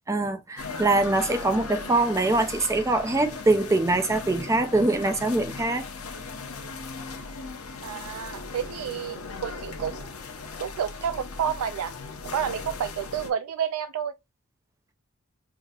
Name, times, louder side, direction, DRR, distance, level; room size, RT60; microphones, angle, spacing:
voice 1, 0.1-5.8, right 2 dB, 15° right, 0.4 m, -23 dB
sound 1, 0.6-13.3, left 4 dB, 80° left, 0.9 m, -38 dB
voice 2, 7.8-10.1 10.6-11.9 12.2-14.1, right 8 dB, 90° right, 0.3 m, -30 dB
4.7 x 2.7 x 2.3 m
head